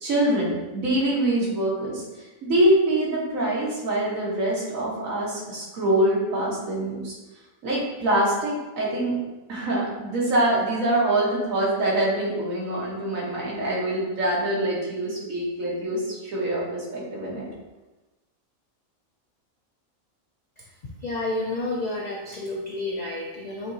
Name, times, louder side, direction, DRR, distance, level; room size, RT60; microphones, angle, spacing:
voice 1, 0.0-7.2 7.6-9.2 9.5-17.5, right 1 dB, 75° right, -5 dB, 1.6 m, -24 dB
voice 2, 21.0-23.7, left 2 dB, 70° left, -2 dB, 0.4 m, -30 dB
6.1 x 2.9 x 2.7 m, 1.1 s
omnidirectional pair, 1.4 m